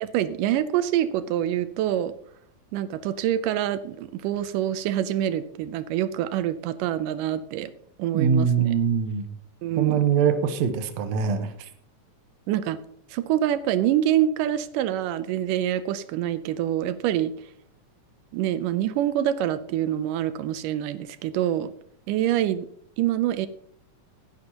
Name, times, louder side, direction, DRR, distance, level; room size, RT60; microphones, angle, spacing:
voice 1, 0.0-2.1 2.7-7.7 8.0-8.7 9.6-10.0 12.5-12.8 13.1-17.3 18.3-21.7 22.1-22.7 23.0-23.5, right 11 dB, 85° right, 13 dB, 2.2 m, -26 dB
voice 2, 8.1-9.2 9.8-11.5, right 7 dB, 65° right, 8 dB, 2.1 m, -23 dB
18.0 x 10.5 x 2.9 m, 0.64 s
omnidirectional pair, 3.7 m